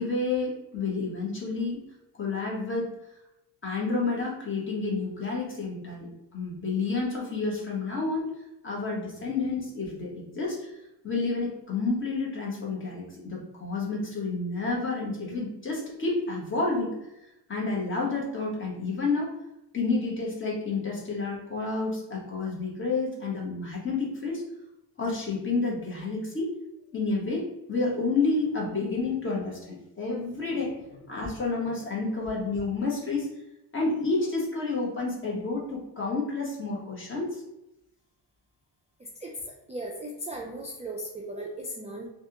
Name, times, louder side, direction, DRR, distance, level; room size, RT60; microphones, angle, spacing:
voice 1, 0.0-1.8 2.1-3.0 3.6-8.3 8.6-10.8 11.0-16.9 17.2-19.3 19.7-24.4 25.0-26.5 26.9-30.8 31.1-33.3 33.7-37.4, left 3 dB, 30° left, -3 dB, 1.2 m, -30 dB
voice 2, 39.7-42.1, right 1 dB, 15° right, -2 dB, 0.4 m, -37 dB
3.3 x 2.5 x 2.8 m, 0.87 s
cardioid pair, 110°, 41 cm